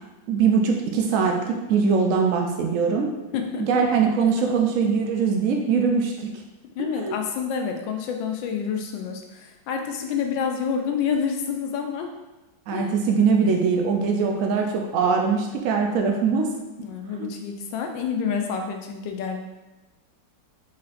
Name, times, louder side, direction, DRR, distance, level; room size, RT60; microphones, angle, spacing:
voice 1, 0.3-3.1 3.6-6.3 7.0-7.2 12.7-16.5 17.2-17.3, right 5 dB, 90° right, 2 dB, 0.7 m, -22 dB
voice 2, 3.3-3.9 4.2-4.3 6.7-12.1 12.7-12.9 16.8-19.4, left 6 dB, 85° left, 3 dB, 1.3 m, -28 dB
4.3 x 4.1 x 2.5 m, 1.1 s
omnidirectional pair, 2.0 m